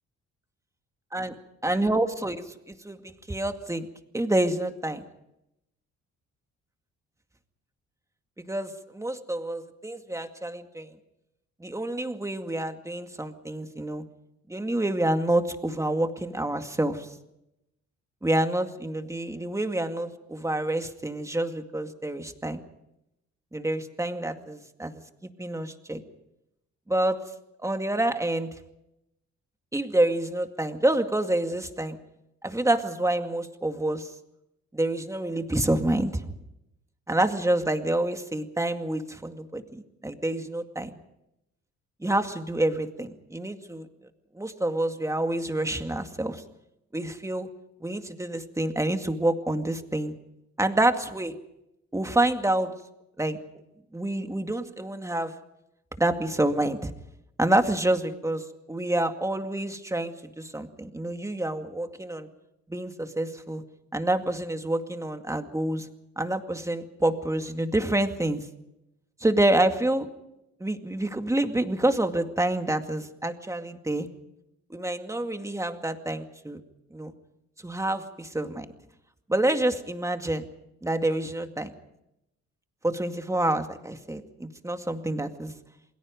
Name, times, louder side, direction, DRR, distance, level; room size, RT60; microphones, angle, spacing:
voice 1, 1.6-3.9 4.1-5.0 8.5-10.9 11.6-14.0 14.5-17.1 18.2-22.6 23.5-24.9 25.2-26.0 26.9-27.2 27.6-28.5 29.7-32.0 32.4-34.1 34.7-36.3 37.1-41.0 42.0-43.9 44.3-46.4 46.9-47.5 47.8-50.1 50.6-51.3 51.9-52.7 53.2-53.4 53.9-55.3 56.0-56.9 57.4-62.3 62.7-63.6 63.9-65.9 66.2-68.5 69.2-70.1 70.6-74.1 74.7-76.6 76.9-77.1 77.6-78.7 79.3-80.4 80.8-81.7 82.8-85.5, right 1 dB, 10° right, 6 dB, 2.2 m, -27 dB
28.5 x 21.0 x 5.2 m, 0.86 s
cardioid pair, 90°, 30 cm